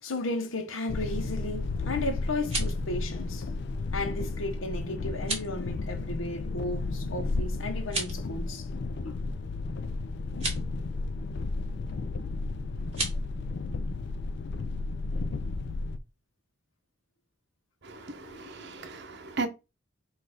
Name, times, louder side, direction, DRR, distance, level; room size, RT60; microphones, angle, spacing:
voice 1, 0.0-3.5 3.9-8.7 9.0-9.1 18.2-18.7, left 2 dB, 90° left, 0.9 m, -34 dB
sound 1, 0.9-16.0, left 3 dB, 60° left, 0.4 m, -33 dB
sound 2, 2.3-2.8 5.1-5.5 7.8-8.3 10.3-10.6 12.9-13.2, right 2 dB, 30° right, 2.1 m, -33 dB
voice 2, 17.8-19.5, right 3 dB, 60° right, 0.8 m, -36 dB
4.4 x 2.5 x 4.8 m
head